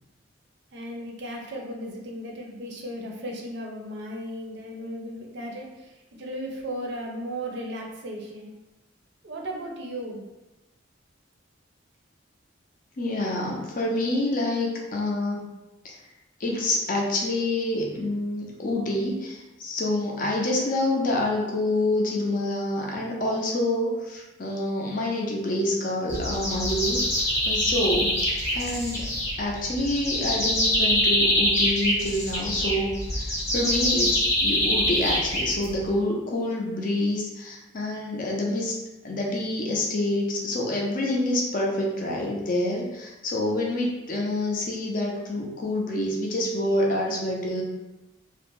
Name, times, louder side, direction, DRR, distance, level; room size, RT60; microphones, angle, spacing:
voice 1, 0.7-8.5 9.2-10.2, equal, 60° right, 0 dB, 0.5 m, -36 dB
voice 2, 13.0-15.5 15.8-15.9 16.4-27.0 27.5-28.2 28.5-29.1 29.4-38.7 39.0-47.6, left 1 dB, 45° left, -2 dB, 0.5 m, -27 dB
sound 1, 26.1-35.9, left 1 dB, 15° left, 0.8 m, -25 dB
2.5 x 2.0 x 3.0 m, 1.0 s
head